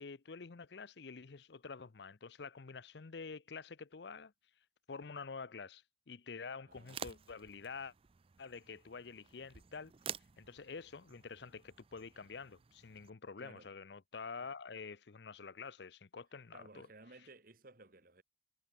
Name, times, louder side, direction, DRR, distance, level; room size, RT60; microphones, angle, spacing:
voice 1, 0.0-4.3 4.9-7.9 8.4-9.9 10.4-16.9, left 5 dB, 65° left, 0.7 m, -48 dB
sound 1, 6.7-13.1, right 8 dB, 30° right, 0.4 m, -51 dB
voice 2, 6.7-7.3 13.4-13.7 16.5-18.2, right 2 dB, 50° right, 2.0 m, -58 dB
head